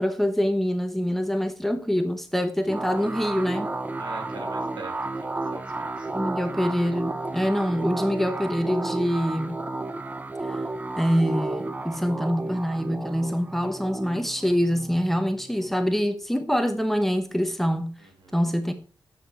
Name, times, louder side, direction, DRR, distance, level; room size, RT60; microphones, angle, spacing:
voice 1, 0.0-3.7 6.1-9.6 10.5-10.6 11.0-17.9 18.3-18.7, equal, 5° left, 1.0 m, -25 dB
sound 1, 2.7-15.9, right 2 dB, 20° right, 0.5 m, -32 dB
voice 2, 4.0-6.3 18.0-18.4, right 3 dB, 80° right, 2.3 m, -43 dB
7.6 x 6.5 x 4.9 m
wide cardioid pair, 110°, 8 cm